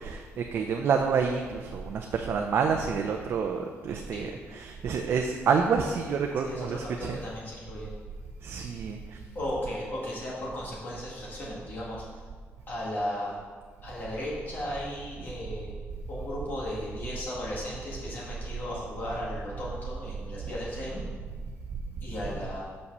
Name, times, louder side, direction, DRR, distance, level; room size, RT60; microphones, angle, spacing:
voice 1, 0.0-7.2 8.4-9.2 22.3-22.4, right 6 dB, 50° right, 3 dB, 0.5 m, -28 dB
voice 2, 6.4-7.9 9.3-12.0 12.7-13.4 13.8-15.8 16.1-21.0 22.0-22.6, left 1 dB, 40° left, -5 dB, 1.8 m, -35 dB
5.7 x 5.4 x 6.5 m, 1.5 s
cardioid pair, 155°, 5 cm